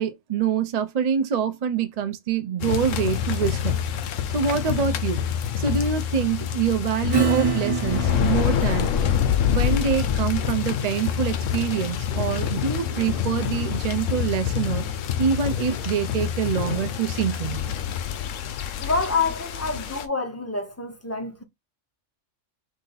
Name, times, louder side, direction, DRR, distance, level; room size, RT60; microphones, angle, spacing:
voice 1, 0.0-3.8 4.3-5.2 5.6-8.9 9.4-14.8 15.2-17.6, right 7 dB, 55° right, 0.4 m, -25 dB
sound 1, 2.6-20.0, left 9 dB, 80° left, 1.0 m, -26 dB
Acoustic guitar / Strum, 7.1-14.3, right 4 dB, 25° right, 1.3 m, -30 dB
sound 2, 9.6-17.3, left 7 dB, 55° left, 0.7 m, -37 dB
voice 2, 18.8-21.4, left 4 dB, 15° left, 0.6 m, -27 dB
4.9 x 2.6 x 3.8 m
omnidirectional pair, 1.3 m